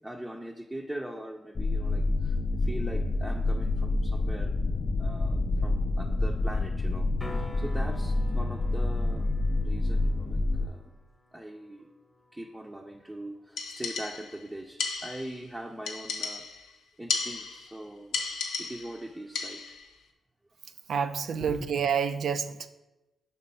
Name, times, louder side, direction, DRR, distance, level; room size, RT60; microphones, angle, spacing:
voice 1, 0.0-4.6 5.0-11.0 11.3-11.9 12.3-16.4 17.0-18.2 18.6-19.7 21.3-21.7, right 1 dB, 15° right, 0 dB, 0.6 m, -41 dB
sound 1, 1.5-10.7, left 2 dB, 50° left, 0.4 m, -28 dB
sound 2, 7.2-13.2 17.9-18.0, left 1 dB, 15° left, 0.9 m, -48 dB
sound 3, 13.6-14.4 14.8-15.4 15.9-16.7 17.1-17.8 18.1-19.0 19.4-19.9, left 5 dB, 90° left, 0.7 m, -34 dB
voice 2, 20.9-22.7, right 7 dB, 70° right, 10 dB, 0.4 m, -28 dB
5.4 x 3.8 x 5.4 m, 0.99 s
cardioid pair, 60°, 0 cm